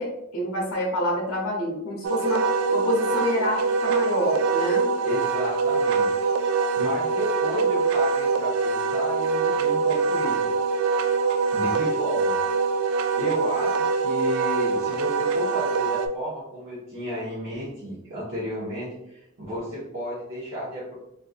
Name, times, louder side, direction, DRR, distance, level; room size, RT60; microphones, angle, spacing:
voice 1, 0.0-4.9, left 1 dB, 90° left, -2 dB, 0.8 m, -27 dB
Wind instrument woodwind instrument, 2.0-16.1, right 4 dB, 85° right, 0.3 m, -24 dB
voice 2, 5.0-10.5 11.5-12.4 13.2-21.0, equal, 65° right, -12 dB, 1.3 m, -33 dB
3.2 x 2.6 x 2.4 m, 0.82 s
head